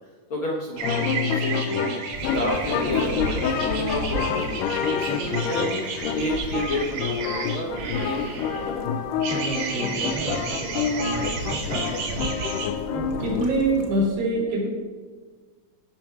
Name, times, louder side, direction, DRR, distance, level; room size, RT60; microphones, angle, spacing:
voice 1, 0.3-2.0 2.2-8.7, equal, 60° left, -2 dB, 1.4 m, -31 dB
sound 1, 0.8-13.5, left 6 dB, 80° left, 2.2 m, -28 dB
sound 2, 0.8-8.7 9.2-12.7, right 5 dB, 70° right, 2.9 m, -33 dB
sound 3, 2.1-14.1, right 1 dB, 45° right, 1.8 m, -37 dB
voice 2, 9.3-14.7, right 1 dB, 90° right, -3 dB, 5.1 m, -28 dB
15.5 x 6.1 x 4.6 m, 1.4 s
omnidirectional pair, 4.0 m